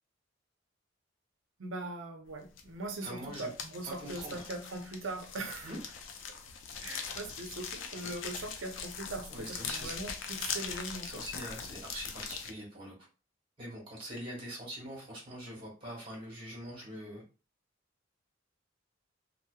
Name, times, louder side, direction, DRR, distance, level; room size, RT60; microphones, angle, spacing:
voice 1, 1.6-5.7 6.8-11.2, right 2 dB, 85° right, 4 dB, 0.6 m, -41 dB
sound 1, 2.6-2.9 3.1-12.5, left 6 dB, 80° left, 0.4 m, -41 dB
voice 2, 3.0-3.5 3.8-4.4 5.6-5.8 9.3-10.0 11.0-12.9 13.6-17.2, equal, 30° right, -4 dB, 1.3 m, -43 dB
2.7 x 2.0 x 2.3 m, 0.33 s
head